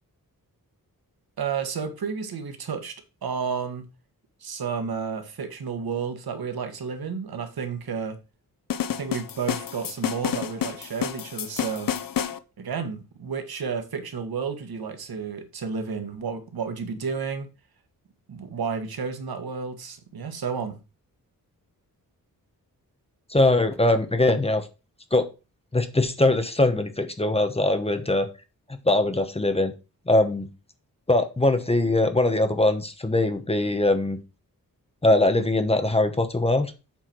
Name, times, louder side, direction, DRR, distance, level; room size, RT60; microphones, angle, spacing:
voice 1, 1.4-3.0 3.2-3.9 4.4-8.2 8.9-11.9 12.6-17.5 18.3-20.8, right 6 dB, 85° right, 1.6 m, -31 dB
sound 1, 8.7-12.4, left 9 dB, 65° left, 0.7 m, -29 dB
voice 2, 23.3-24.7 25.1-25.3 25.7-28.3 28.7-29.7 30.1-30.5 31.1-34.2 35.0-36.7, left 2 dB, 15° left, 1.0 m, -22 dB
8.0 x 4.5 x 6.1 m
wide cardioid pair, 160°, 36 cm